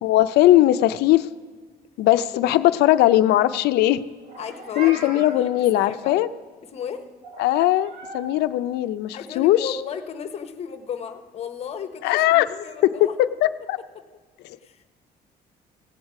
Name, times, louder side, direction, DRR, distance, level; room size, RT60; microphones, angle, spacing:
voice 1, 0.0-1.3 2.0-4.0 4.8-6.3 7.4-9.8 12.0-12.5 12.8-12.9 13.2-13.8 14.4-14.6, left 14 dB, 85° left, 13 dB, 0.5 m, -19 dB
Meow, 4.2-5.4 7.2-8.3, right 2 dB, 60° right, 2.0 m, -38 dB
voice 2, 4.4-6.3 6.7-7.0 9.1-13.2 14.6-14.8, left 7 dB, 40° left, 10 dB, 0.8 m, -35 dB
17.0 x 8.1 x 4.8 m, 1.5 s
cardioid pair, 170°, 17 cm